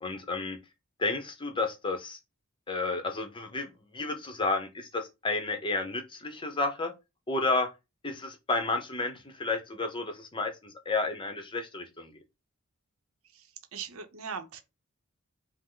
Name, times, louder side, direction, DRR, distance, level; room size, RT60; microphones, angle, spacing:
voice 1, 0.0-0.6 1.0-2.2 2.7-6.9 7.3-7.7 8.0-12.2, left 3 dB, 20° left, 0.7 m, -31 dB
voice 2, 13.3-14.6, right 6 dB, 70° right, 0.7 m, -40 dB
5.4 x 2.0 x 3.8 m
head